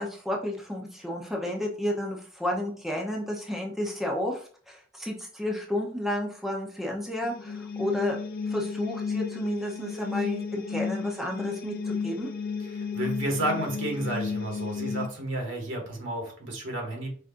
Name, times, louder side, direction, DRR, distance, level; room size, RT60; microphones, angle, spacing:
voice 1, 0.0-8.2 8.5-12.3, left 1 dB, ahead, -1 dB, 0.7 m, -31 dB
sound 1, 7.2-15.1, left 5 dB, 50° left, 0.5 m, -33 dB
voice 2, 12.7-17.1, right 1 dB, 75° right, 1 dB, 1.7 m, -31 dB
5.0 x 4.0 x 2.5 m, 0.43 s
head